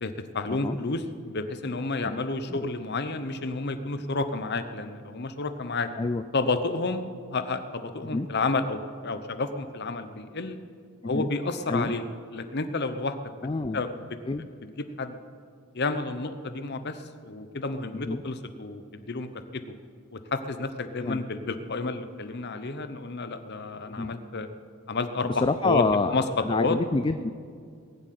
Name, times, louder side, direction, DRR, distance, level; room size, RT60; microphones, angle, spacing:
voice 1, 0.0-5.9 6.3-7.0 7.3-10.6 11.0-12.0 12.3-13.2 13.7-14.0 14.6-15.2 15.7-19.7 20.1-24.5 24.9-25.8 26.1-26.2 26.5-26.8, left 3 dB, 50° left, 9 dB, 0.9 m, -30 dB
voice 2, 13.4-13.8 14.3-14.5 18.1-18.2 21.0-21.2 23.9-24.1 25.2-27.3, left 3 dB, 20° left, 11 dB, 0.3 m, -27 dB
20.0 x 7.6 x 9.2 m, 2.2 s
head